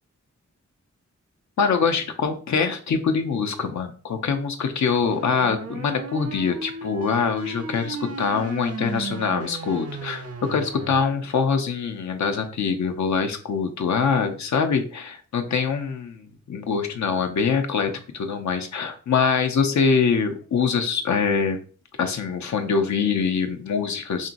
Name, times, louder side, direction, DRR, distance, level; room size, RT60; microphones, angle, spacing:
voice 1, 1.6-21.6 22.0-24.3, left 5 dB, 70° left, 7 dB, 0.5 m, -24 dB
sound 1, 5.0-11.0, right 3 dB, 55° right, 0.5 m, -35 dB
2.9 x 2.6 x 2.5 m, 0.40 s
cardioid pair, 45°, 30 cm